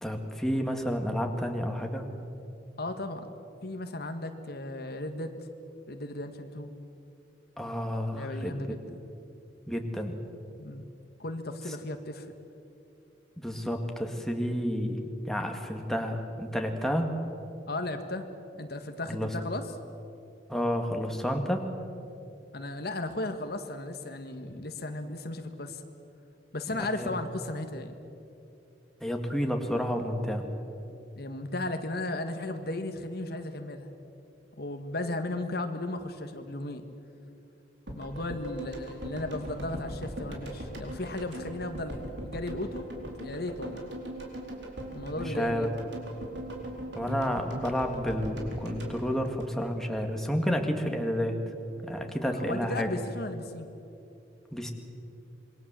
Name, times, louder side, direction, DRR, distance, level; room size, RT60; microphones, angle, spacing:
voice 1, 0.0-2.1 7.6-8.5 9.7-10.2 13.4-17.1 19.1-19.3 20.5-21.7 26.8-27.1 29.0-30.5 45.1-45.7 47.0-51.4 51.8-52.9 54.5-54.7, equal, ahead, 3 dB, 2.0 m, -30 dB
voice 2, 2.8-5.5 5.9-6.7 8.1-9.0 10.6-10.9 11.2-12.3 17.7-18.3 18.6-19.6 22.5-25.8 26.5-28.0 31.2-33.9 34.6-36.9 37.9-42.9 43.2-43.9 44.9-45.7 52.3-53.7, left 2 dB, 60° left, 7 dB, 1.7 m, -35 dB
sound 1, 37.9-50.1 50.3-50.4, right 1 dB, 75° right, 4.3 m, -40 dB
27.0 x 22.5 x 7.6 m, 2.8 s
head